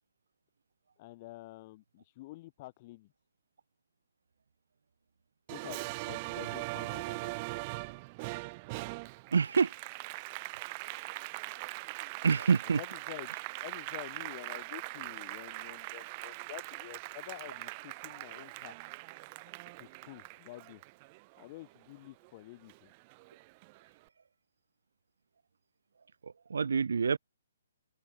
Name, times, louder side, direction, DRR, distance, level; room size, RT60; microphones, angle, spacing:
voice 1, 1.0-3.1 5.5-7.4 12.6-13.3 13.6-18.8 19.7-20.8 21.4-22.9, left 19 dB, 30° left, 4.3 m, -48 dB
Applause, 5.5-22.3 22.7-23.9, right 26 dB, 25° right, 5.6 m, -41 dB
voice 2, 9.3-9.7 12.2-12.8 26.5-27.2, right 5 dB, 80° right, 1.5 m, -26 dB
hypercardioid pair, 165°, 0 cm